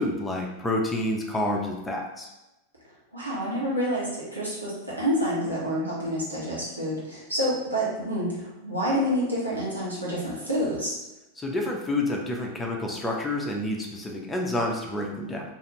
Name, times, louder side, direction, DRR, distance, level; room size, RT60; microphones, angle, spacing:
voice 1, 0.0-2.3 11.4-15.4, left 1 dB, 10° left, 0 dB, 0.5 m, -28 dB
voice 2, 3.1-11.0, equal, 85° right, -7 dB, 1.0 m, -28 dB
2.5 x 2.4 x 2.9 m, 0.99 s
figure-of-eight pair, 90°, 0 cm